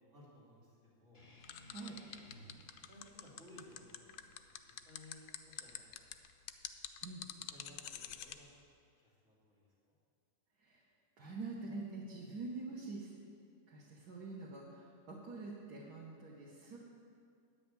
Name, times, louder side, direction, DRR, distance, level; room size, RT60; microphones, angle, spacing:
voice 1, 0.1-1.3 1.8-1.9 2.9-4.1 4.4-5.2 5.4-6.1 7.3-8.5 9.0-9.9, left 1 dB, 45° right, -8 dB, 3.1 m, -59 dB
sound 1, 1.1-6.2, equal, 30° left, 1.8 m, -62 dB
sound 2, 1.4-8.4, left 11 dB, 80° left, 1.1 m, -46 dB
voice 2, 11.2-13.1 13.7-16.8, right 3 dB, 80° right, -4 dB, 1.8 m, -46 dB
9.9 x 5.9 x 8.3 m, 2.3 s
omnidirectional pair, 1.7 m